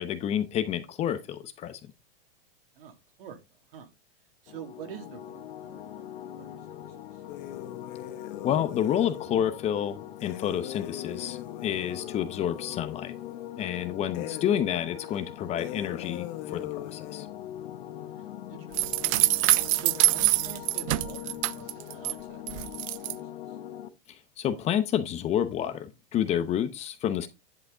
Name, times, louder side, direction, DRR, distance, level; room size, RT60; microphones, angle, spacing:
voice 1, 0.0-1.8 8.4-13.1 13.6-17.3 24.4-27.3, left 10 dB, 20° left, 0.8 m, -29 dB
voice 2, 2.8-3.4 3.7-3.9 4.4-6.6 18.0-18.8 19.8-22.4 22.7-22.8, right 8 dB, 75° right, 2.6 m, -46 dB
sound 1, 4.5-23.9, left 11 dB, 70° left, 1.3 m, -42 dB
sound 2, 7.3-9.3 10.2-13.8 14.1-14.7 15.1-15.2 15.6-17.3, left 13 dB, 45° left, 1.0 m, -41 dB
sound 3, 18.7-22.1 22.5-23.1, right 19 dB, 35° right, 0.4 m, -25 dB
10.5 x 5.7 x 3.8 m
supercardioid pair, 155°, 29 cm